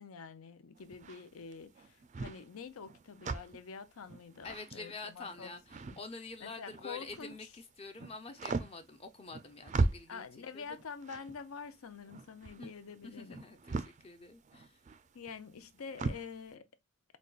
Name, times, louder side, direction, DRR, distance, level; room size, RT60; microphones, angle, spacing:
voice 1, 0.0-5.5 5.8-6.0 6.4-7.4 10.1-13.4 15.1-16.7, left 5 dB, 90° left, 0.5 m, -47 dB
sound 1, 0.8-7.4 7.8-16.3, right 3 dB, 35° right, 0.4 m, -39 dB
voice 2, 4.4-10.3 10.5-10.6 12.6-12.7 13.0-14.8, left 3 dB, 30° left, 0.5 m, -47 dB
5.1 x 2.2 x 2.3 m
head